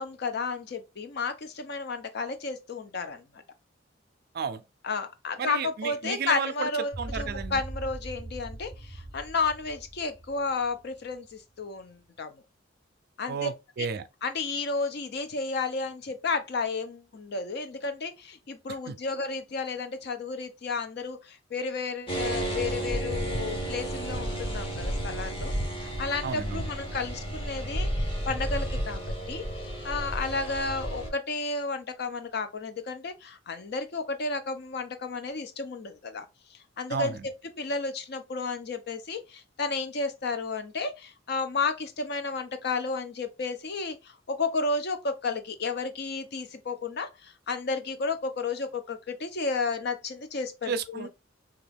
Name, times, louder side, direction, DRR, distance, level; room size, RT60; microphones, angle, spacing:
voice 1, 0.0-3.2 4.8-12.3 13.2-13.5 14.2-25.5 25.8-29.4 29.8-36.3 36.8-37.1 37.6-51.1, left 4 dB, 55° left, 0.5 m, -32 dB
voice 2, 5.4-6.7 7.0-7.6 13.3-14.1 18.7-19.0 26.2-26.6 36.9-37.3 50.6-51.1, right 6 dB, 55° right, 0.4 m, -33 dB
sound 1, 6.9-11.2, right 1 dB, 75° left, 1.4 m, -40 dB
sound 2, 22.1-31.1, right 1 dB, 30° left, 0.9 m, -32 dB
2.9 x 2.3 x 3.3 m
head